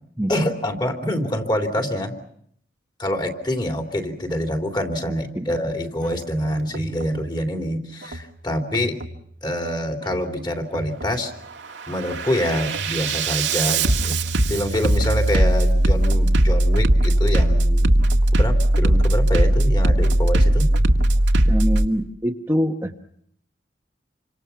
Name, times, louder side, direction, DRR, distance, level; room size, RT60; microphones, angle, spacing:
voice 1, 0.3-2.2 3.0-8.9 9.4-11.3 11.9-14.2 14.5-18.0 18.3-20.7, equal, 25° left, 3 dB, 3.2 m, -26 dB
Bass drum, 6.0-6.3 6.7-7.2 8.0-8.3 8.7-9.2 10.0-10.3 10.7-11.2 11.6-21.9, right 1 dB, 85° right, 1.9 m, -19 dB
voice 2, 21.5-22.9, equal, 15° right, 2 dB, 1.2 m, -23 dB
29.0 x 25.5 x 5.9 m, 0.68 s
head